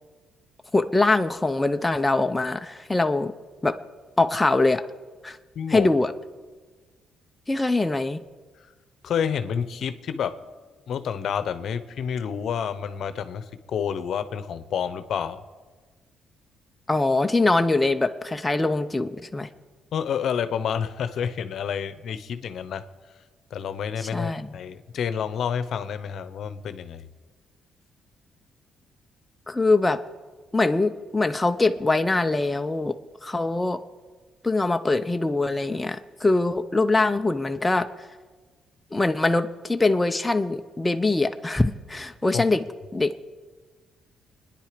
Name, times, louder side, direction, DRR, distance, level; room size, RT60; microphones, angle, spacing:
voice 1, 0.7-3.3 3.6-3.7 4.2-4.8 5.2-5.4 5.7-6.1 7.5-8.2 16.9-19.5 24.1-24.5 29.5-30.0 30.5-33.0 33.2-33.8 34.4-37.9 38.9-42.6 42.9-43.1, left 2 dB, 15° left, 7 dB, 0.7 m, -23 dB
voice 2, 5.5-5.9 9.0-10.4 10.9-15.4 19.9-22.8 23.5-27.1 42.3-42.4, left 7 dB, 65° left, 12 dB, 0.9 m, -29 dB
25.5 x 10.5 x 5.1 m, 1.4 s
cardioid pair, 90°, 0 cm